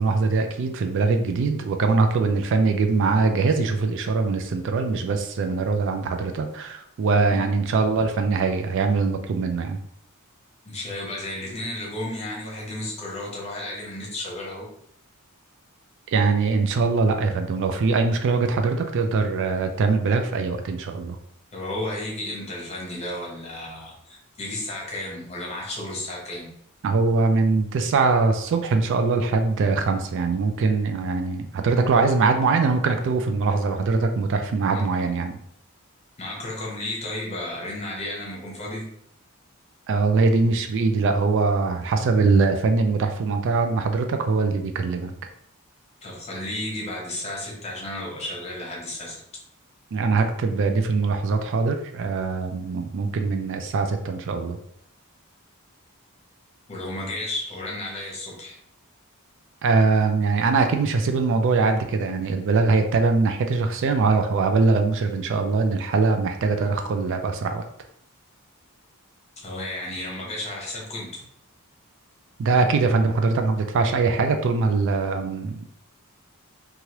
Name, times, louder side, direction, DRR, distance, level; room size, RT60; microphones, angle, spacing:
voice 1, 0.0-9.8 16.1-21.2 26.8-35.4 39.9-45.1 49.9-54.6 59.6-67.6 72.4-75.7, right 4 dB, 55° right, 6 dB, 0.3 m, -22 dB
voice 2, 10.6-14.7 21.5-26.5 34.7-34.8 36.2-38.9 46.0-49.2 56.7-58.6 69.4-71.2, left 1 dB, 30° left, -2 dB, 0.9 m, -33 dB
3.1 x 2.3 x 2.8 m, 0.72 s
head